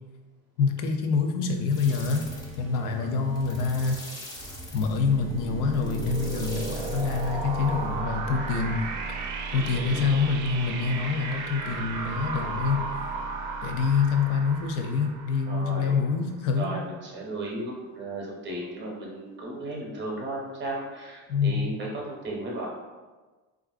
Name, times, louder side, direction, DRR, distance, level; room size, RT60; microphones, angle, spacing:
voice 1, 0.6-2.3 2.6-4.0 4.7-8.8 9.5-12.8 13.6-16.8 21.3-21.7, left 5 dB, 80° left, 4 dB, 0.5 m, -26 dB
sound 1, 1.7-8.0, left 1 dB, 15° left, 0.4 m, -42 dB
sound 2, 4.4-16.1, right 4 dB, 75° right, 0.5 m, -34 dB
voice 2, 9.4-10.0 12.4-12.5 15.5-16.0 16.6-21.9 22.2-22.7, right 2 dB, 35° right, -2 dB, 0.7 m, -35 dB
3.4 x 2.4 x 2.3 m, 1.3 s
cardioid pair, 160°, 32 cm